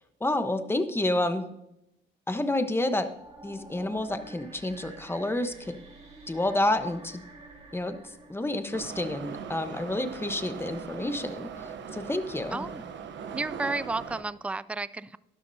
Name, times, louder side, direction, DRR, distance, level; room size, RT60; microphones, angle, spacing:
voice 1, 0.2-1.5 2.3-3.1 3.4-5.8 6.3-7.2 7.7-8.0 8.3-12.6, left 1 dB, 10° left, 9 dB, 1.0 m, -29 dB
sound 1, 3.0-10.1, right 2 dB, 30° right, 3.3 m, -50 dB
Subway metro underground, 8.7-14.2, right 6 dB, 65° right, 0.9 m, -40 dB
voice 2, 12.5-12.9 13.3-15.2, right 3 dB, 5° right, 17 dB, 0.3 m, -32 dB
12.5 x 11.0 x 2.7 m, 0.84 s
cardioid pair, 90°, 20 cm